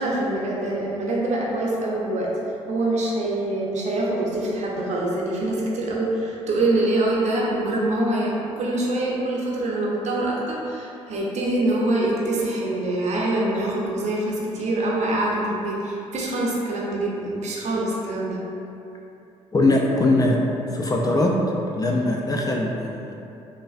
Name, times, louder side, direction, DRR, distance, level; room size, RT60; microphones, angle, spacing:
voice 1, 0.0-2.3 2.7-18.4, right 1 dB, 50° right, -4 dB, 0.7 m, -24 dB
voice 2, 19.5-20.4 20.7-21.4 21.8-23.1, left 2 dB, 25° left, -1 dB, 0.3 m, -21 dB
3.2 x 2.4 x 2.4 m, 2.8 s
hypercardioid pair, 50°, 15 cm